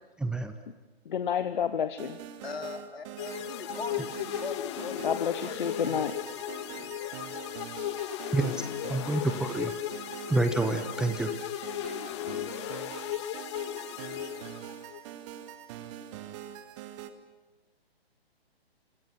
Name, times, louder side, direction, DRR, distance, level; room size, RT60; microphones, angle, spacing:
voice 1, 0.2-0.6 8.3-9.7 10.3-11.3, right 2 dB, ahead, 6 dB, 0.7 m, -28 dB
voice 2, 1.1-2.2 5.0-6.2, left 8 dB, 50° left, 12 dB, 1.1 m, -29 dB
sound 1, 2.0-17.1, right 10 dB, 30° right, 1.7 m, -44 dB
voice 3, 2.4-6.5, left 4 dB, 70° left, 4 dB, 3.6 m, -41 dB
sound 2, 3.2-15.0, left 12 dB, 25° left, 0.9 m, -36 dB
26.5 x 26.0 x 6.1 m, 1.2 s
figure-of-eight pair, 130°, 32 cm